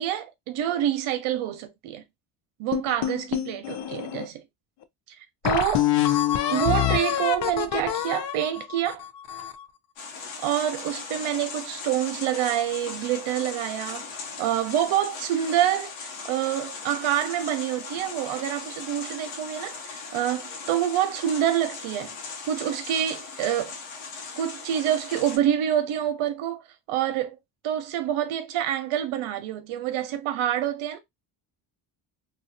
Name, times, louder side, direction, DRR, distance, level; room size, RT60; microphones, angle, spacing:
voice 1, 0.0-2.0 2.6-4.4 5.1-5.9 6.5-9.0 10.4-14.0 14.4-15.9 16.3-22.2 22.5-23.7 24.4-26.6 26.9-27.4 27.6-31.0, right 11 dB, 75° right, 0.8 m, -27 dB
sound 1, 2.7-4.3 4.8-4.9 5.4-9.6, left 11 dB, 55° left, 0.6 m, -26 dB
sound 2, 10.0-25.4, left 4 dB, 80° left, 1.0 m, -38 dB
2.7 x 2.3 x 2.6 m
cardioid pair, 75°, 49 cm